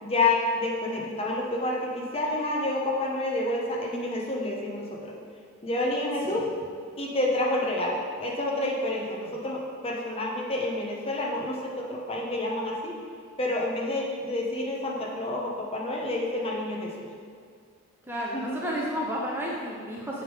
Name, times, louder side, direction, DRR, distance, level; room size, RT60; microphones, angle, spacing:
voice 1, 0.0-5.1 5.6-6.4 7.0-12.9 13.4-17.1 18.3-18.6, left 2 dB, 25° left, -2 dB, 0.9 m, -29 dB
voice 2, 18.1-20.2, equal, 10° right, -3 dB, 0.5 m, -32 dB
8.9 x 3.6 x 4.8 m, 2.1 s
head